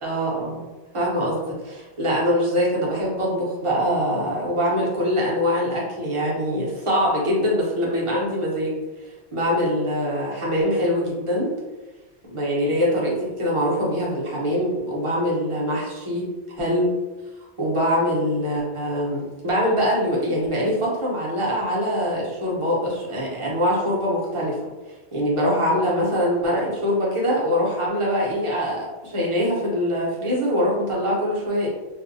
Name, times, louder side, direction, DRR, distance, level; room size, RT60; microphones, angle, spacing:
voice 1, 0.0-0.7 0.9-8.8 9.3-11.5 12.3-16.2 16.6-16.9 17.6-24.7 25.1-31.7, equal, 35° right, -5 dB, 0.7 m, -23 dB
2.5 x 2.2 x 2.6 m, 1.2 s
omnidirectional pair, 1.1 m